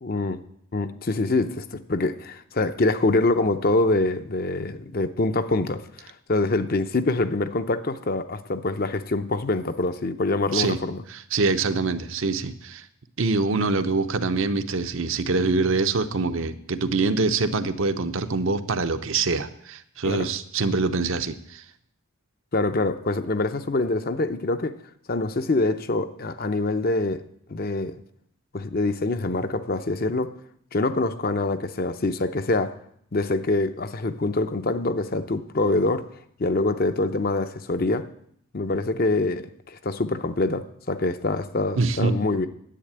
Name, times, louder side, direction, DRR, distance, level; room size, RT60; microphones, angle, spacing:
voice 1, 0.0-0.4 0.7-11.0 20.1-20.3 22.5-24.8 25.1-27.2 27.5-27.9 28.5-30.3 30.7-32.8 33.1-36.0 36.4-38.1 38.5-42.5, left 2 dB, 40° left, 10 dB, 0.6 m, -25 dB
voice 2, 11.1-12.9 13.2-21.6 41.8-42.2, right 3 dB, 65° right, 9 dB, 0.8 m, -24 dB
10.5 x 8.3 x 8.7 m, 0.70 s
head